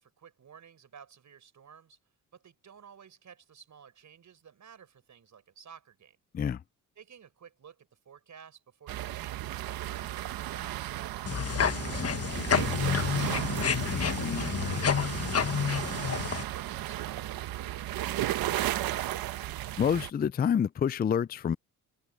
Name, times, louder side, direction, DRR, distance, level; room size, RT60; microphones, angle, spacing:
voice 1, 0.0-2.0 2.3-6.2 7.0-12.2 12.8-15.5 15.8-18.7, right 7 dB, 55° right, 5.5 m, -53 dB
sound 1, 8.9-20.1, right 14 dB, 85° right, 1.5 m, -34 dB
sound 2, 11.3-16.4, left 7 dB, 45° left, 1.5 m, -29 dB
voice 2, 12.3-12.7 19.8-21.6, left 8 dB, 25° left, 0.4 m, -28 dB
open air
cardioid pair, 70°, 35 cm